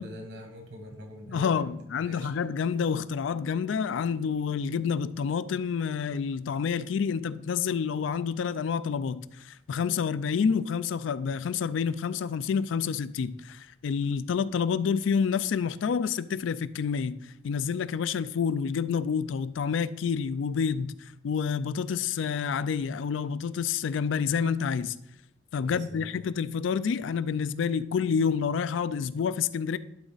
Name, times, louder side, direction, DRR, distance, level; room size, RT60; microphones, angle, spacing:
voice 1, 0.0-2.4 25.6-26.3, equal, 60° right, 1.6 m, -44 dB
voice 2, 1.3-17.2 17.4-24.9 25.5-29.8, left 6 dB, 75° left, 0.3 m, -28 dB
11.5 x 4.0 x 4.0 m
head